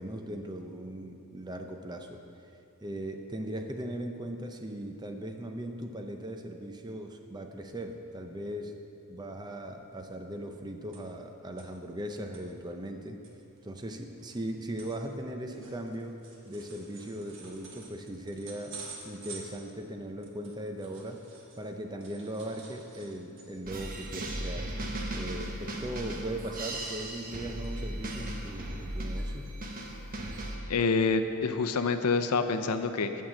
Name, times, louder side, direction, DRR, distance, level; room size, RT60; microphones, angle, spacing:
voice 1, 0.0-2.2 2.8-8.8 9.1-13.2 13.6-16.2 16.4-18.8 19.0-21.2 21.6-24.7 25.1-29.5, right 1 dB, 20° right, 4 dB, 0.5 m, -39 dB
sound 1, 10.9-11.3 11.6-11.7 12.1-12.4 12.9-13.0 13.2-21.7 22.0-23.7 24.1-24.3 24.6-24.9 25.9-26.5 26.9-27.4 27.6-27.7 28.4-28.5, right 4 dB, 60° right, 1.4 m, -50 dB
sound 2, 23.6-30.6, right 1 dB, 40° right, 1.0 m, -37 dB
voice 2, 30.7-33.2, left 4 dB, 90° left, 8 dB, 0.6 m, -27 dB
8.9 x 5.5 x 7.4 m, 2.7 s
head